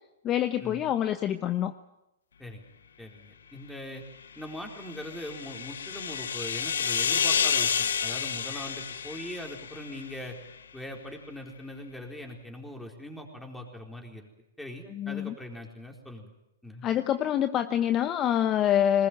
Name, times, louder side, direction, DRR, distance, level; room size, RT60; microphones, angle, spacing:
voice 1, 0.2-1.7 14.9-15.3 16.8-19.1, left 10 dB, 25° left, 10 dB, 0.9 m, -26 dB
voice 2, 3.0-4.0 4.4-10.4 10.7-14.3 14.6-16.3 16.6-16.9, left 1 dB, 5° left, 2 dB, 4.2 m, -41 dB
sound 1, 4.5-10.1, left 7 dB, 80° left, 1.2 m, -30 dB
21.0 x 20.0 x 9.3 m, 0.90 s
hypercardioid pair, 130°, 0 cm